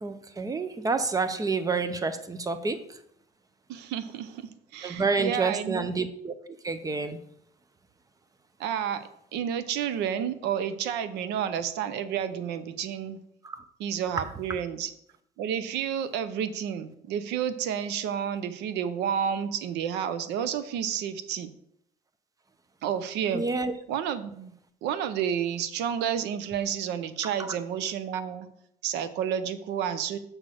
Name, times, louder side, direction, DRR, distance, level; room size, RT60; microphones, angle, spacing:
voice 1, 0.0-2.8 4.8-6.3 6.6-7.2 23.3-23.7, right 4 dB, 20° right, 0.7 m, -28 dB
voice 2, 3.7-5.9 8.6-13.2 13.8-14.9 15.4-21.5 22.8-23.5 23.9-24.5 24.8-28.5 28.8-30.2, right 8 dB, 85° right, 0.7 m, -30 dB
6.3 x 4.2 x 6.3 m
cardioid pair, 110°, 17 cm